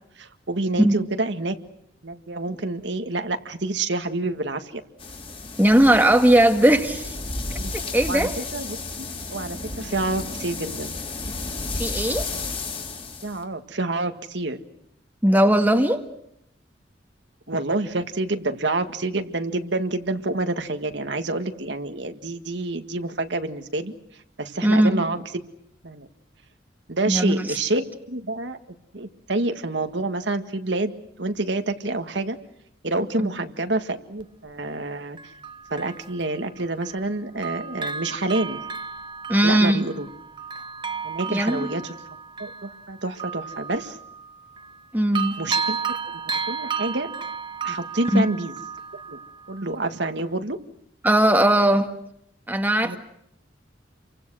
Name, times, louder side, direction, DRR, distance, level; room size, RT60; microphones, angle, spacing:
voice 1, 0.2-1.6 2.0-4.8 7.6-7.7 8.1-11.0 13.2-14.6 17.5-23.9 24.4-25.2 25.8-26.1 26.9-28.6 28.9-30.9 31.2-32.4 32.8-35.2 35.7-38.6 39.4-40.1 41.0-41.9 42.4-44.0 45.4-45.8 46.5-47.1 47.6-48.5 49.1-49.2 49.5-50.6 52.8-53.0, right 2 dB, 65° right, 7 dB, 1.9 m, -28 dB
sound 1, 5.0-13.4, left 3 dB, 30° left, 3.8 m, -33 dB
voice 2, 5.6-7.2 7.5-7.6 7.9-8.3 11.8-12.3 15.2-16.0 24.6-25.0 27.0-27.6 33.2-33.3 39.3-39.9 41.3-41.7 44.9-45.4 48.1-48.3 51.0-51.9 52.5-53.0, right 1 dB, 10° right, 5 dB, 1.8 m, -18 dB
Bell, 34.2-34.3 35.2-37.1 37.4-44.9 45.2-49.8 50.2-50.3, right 5 dB, 25° right, 1.1 m, -33 dB
30.0 x 24.5 x 6.3 m, 0.77 s
head